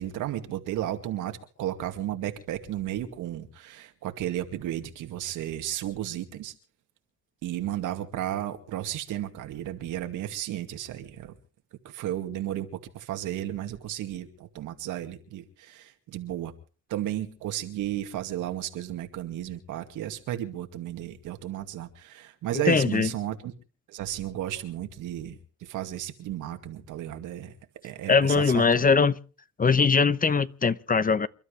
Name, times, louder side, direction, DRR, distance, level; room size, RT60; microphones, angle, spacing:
voice 1, 0.0-6.5 7.4-11.3 11.8-16.5 16.9-23.5 23.9-27.5 27.8-28.9, right 12 dB, 90° right, 2.3 m, -33 dB
voice 2, 22.5-23.1 28.1-29.2 29.6-31.3, left 5 dB, 30° left, 0.9 m, -21 dB
28.5 x 12.5 x 3.3 m
cardioid pair, 90°, 30 cm